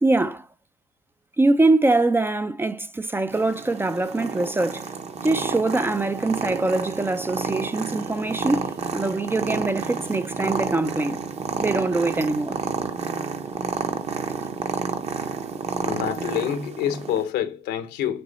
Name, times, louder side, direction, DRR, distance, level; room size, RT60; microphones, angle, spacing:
voice 1, 0.0-0.5 1.4-4.9 5.2-8.7 8.9-11.2 11.6-12.6, right 2 dB, 15° right, 0.4 m, -23 dB
Purr, 3.3-17.2, right 5 dB, 40° right, 0.9 m, -30 dB
voice 2, 15.8-18.2, left 10 dB, 85° left, 1.2 m, -27 dB
7.7 x 3.0 x 4.1 m
cardioid pair, 110°, 17 cm